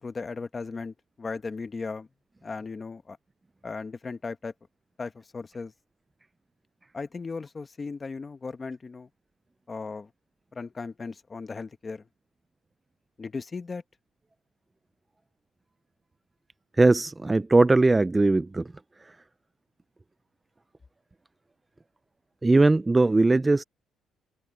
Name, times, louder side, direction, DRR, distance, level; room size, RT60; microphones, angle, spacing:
voice 1, 0.0-2.1 2.4-3.2 3.6-4.5 5.0-5.7 6.9-9.1 9.7-10.1 10.5-12.1 13.2-13.8, left 4 dB, 25° left, 1.3 m, -36 dB
voice 2, 16.8-18.7 19.1-19.2 22.4-23.6, right 2 dB, 15° right, 0.3 m, -20 dB
cardioid pair, 135°, 0 cm